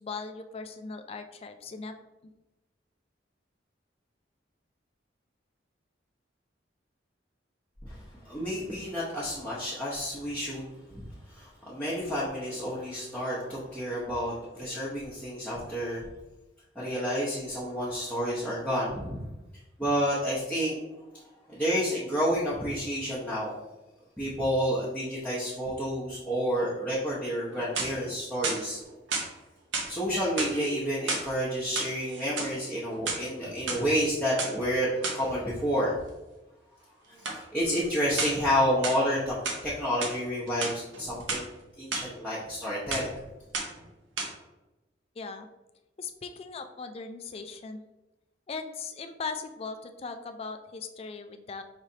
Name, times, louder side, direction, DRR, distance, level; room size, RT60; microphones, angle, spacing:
voice 1, 0.0-1.9 45.2-45.5 46.0-47.8 48.5-51.6, left 4 dB, 30° left, 7 dB, 0.3 m, -39 dB
voice 2, 7.8-16.1 16.7-19.2 19.8-20.8 21.1-23.6 24.2-28.8 29.9-36.0 37.1-41.5 41.8-43.1, equal, 5° left, -9 dB, 0.8 m, -30 dB
sound 1, 27.5-28.1 28.4-29.3 29.7-29.9 30.3-31.3 31.6-32.5 32.9-33.8 34.4-34.5 35.0-35.3 37.2-37.4 38.2-38.5 38.8-39.6 40.0-40.2 40.5-41.4 41.9-42.0 42.4-42.7 42.9-43.2 43.5-43.9 44.2-44.3, right 3 dB, 75° right, 0.9 m, -32 dB
5.0 x 3.2 x 2.7 m, 1.0 s
head